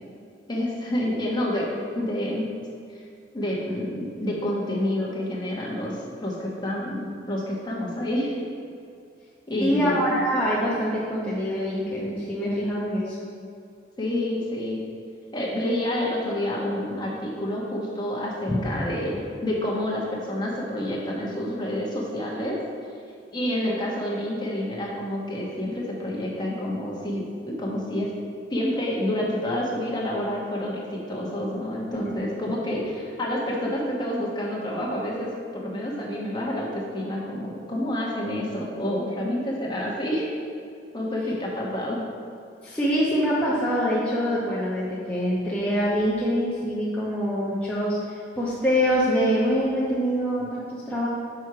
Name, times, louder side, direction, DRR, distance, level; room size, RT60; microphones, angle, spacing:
voice 1, 0.5-1.7 1.9-2.5 2.9-3.0 3.3-8.5 9.5-10.2 14.0-14.8 15.3-22.6 23.3-28.1 28.5-40.3 40.9-42.1, left 1 dB, 25° left, -4 dB, 1.2 m, -28 dB
voice 2, 9.6-13.2 18.5-18.8 31.9-32.0 32.7-32.8 42.6-51.1, equal, 10° left, -8 dB, 0.8 m, -25 dB
6.2 x 4.6 x 4.7 m, 2.4 s
head